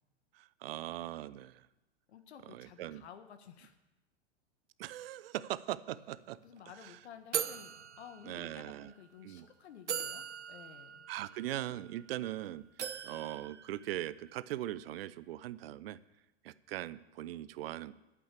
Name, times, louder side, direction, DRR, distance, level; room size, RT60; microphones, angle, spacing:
voice 1, 0.3-1.7 2.5-3.0 4.8-6.4 6.8-6.9 8.2-8.9 9.2-9.5 11.1-12.6 13.0-16.0 16.4-17.9, right 14 dB, 60° right, 17 dB, 0.6 m, -40 dB
voice 2, 2.1-3.8 6.4-11.1, left 8 dB, 70° left, 9 dB, 1.5 m, -53 dB
sound 1, 6.0-6.1 6.3-6.6 7.3-8.8 9.4-9.5 9.9-12.3 12.8-14.4, right 8 dB, 90° right, 0.8 m, -41 dB
8.8 x 8.5 x 8.3 m, 0.99 s
hypercardioid pair, 105°, 34 cm